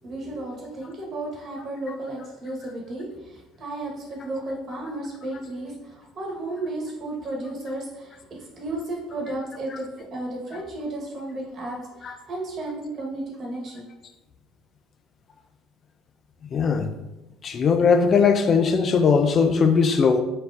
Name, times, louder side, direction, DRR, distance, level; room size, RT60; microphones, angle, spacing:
voice 1, 0.0-13.8, right 2 dB, 50° right, -2 dB, 1.2 m, -33 dB
voice 2, 16.5-16.9 17.4-20.2, left 5 dB, 45° left, 7 dB, 0.5 m, -19 dB
4.1 x 3.9 x 2.5 m, 0.99 s
supercardioid pair, 75°, 0 cm